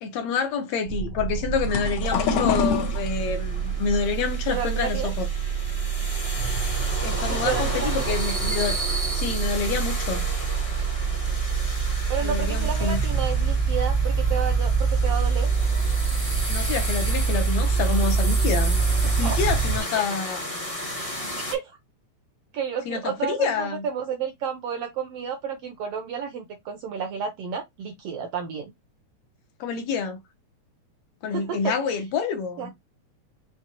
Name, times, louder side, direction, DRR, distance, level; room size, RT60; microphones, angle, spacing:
voice 1, 0.0-5.3 7.0-8.7 9.1-10.2 12.2-13.0 16.5-18.8 19.2-20.4 22.9-23.9 29.6-30.2 31.2-32.7, left 5 dB, 70° left, 2.0 m, -27 dB
sound 1, 0.9-19.8, right 5 dB, 55° right, 0.9 m, -25 dB
sound 2, 1.5-6.7 7.0-7.9 8.4-8.7 9.0-9.1 10.3-10.4 10.9-11.0 11.6-11.7 11.9-12.2 13.4-13.6 14.2-14.3 14.7-15.1, left 6 dB, 85° left, 2.3 m, -29 dB
sound 3, 2.0-21.5, left 1 dB, 35° left, 0.5 m, -34 dB
voice 2, 4.5-5.1 7.3-8.1 12.1-15.5 19.0-19.4 20.9-21.7 22.5-28.7 31.3-31.7 32.6-32.7, right 7 dB, 75° right, 1.4 m, -31 dB
5.9 x 2.4 x 2.9 m
omnidirectional pair, 3.4 m